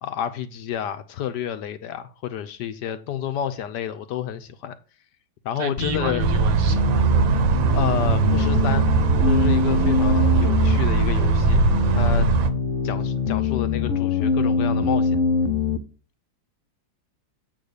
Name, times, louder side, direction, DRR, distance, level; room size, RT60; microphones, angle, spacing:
voice 1, 0.0-4.7 5.4-6.2 7.7-8.8 9.3-11.6 11.9-12.3 12.8-15.2, left 9 dB, 70° left, 1.2 m, -29 dB
voice 2, 5.6-7.1, right 6 dB, 60° right, 1.0 m, -33 dB
sound 1, 5.8-15.8, left 5 dB, 55° left, 0.9 m, -24 dB
sound 2, 6.2-12.5, right 5 dB, 90° right, 1.5 m, -20 dB
7.8 x 3.9 x 6.6 m
omnidirectional pair, 2.1 m